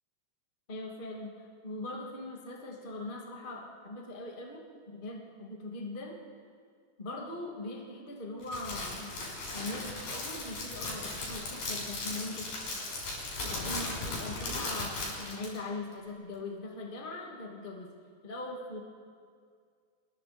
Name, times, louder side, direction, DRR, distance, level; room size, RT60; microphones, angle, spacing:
voice 1, 0.7-6.2 7.0-9.1 9.5-12.5 13.4-17.9 18.2-18.8, left 2 dB, 85° left, -1 dB, 0.4 m, -41 dB
Crackle, 8.4-15.6, left 2 dB, 50° left, 7.7 m, -37 dB
28.5 x 22.0 x 4.4 m, 2.1 s
omnidirectional pair, 5.7 m